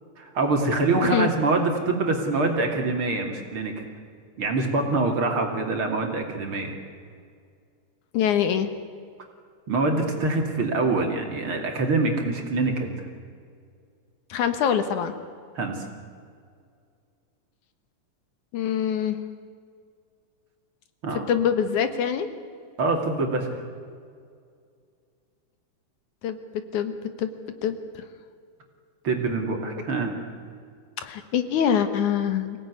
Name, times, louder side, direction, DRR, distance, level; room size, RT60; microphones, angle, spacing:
voice 1, 0.2-3.8 4.4-6.7 9.7-13.0 15.5-15.9 21.0-21.3 22.8-23.5 29.0-30.2, right 3 dB, 45° right, 3 dB, 3.2 m, -25 dB
voice 2, 8.1-8.7 14.3-15.1 18.5-19.2 21.3-22.3 26.2-26.4 26.7-26.9 27.2-27.3 27.6-28.0 29.8-29.9 31.0-32.6, left 8 dB, 75° left, 9 dB, 2.7 m, -24 dB
25.0 x 17.5 x 9.6 m, 2.2 s
omnidirectional pair, 3.6 m